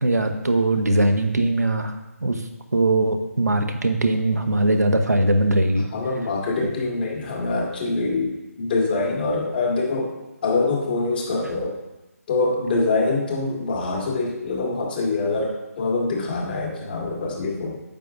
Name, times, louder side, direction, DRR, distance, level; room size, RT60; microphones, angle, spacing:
voice 1, 0.0-1.9 2.2-2.4 2.7-5.9, right 2 dB, 85° right, 5 dB, 1.0 m, -20 dB
voice 2, 5.9-10.1 10.4-11.8 12.3-17.8, left 3 dB, 35° left, -1 dB, 1.9 m, -24 dB
8.9 x 7.9 x 2.5 m, 1.0 s
figure-of-eight pair, 150°, 9 cm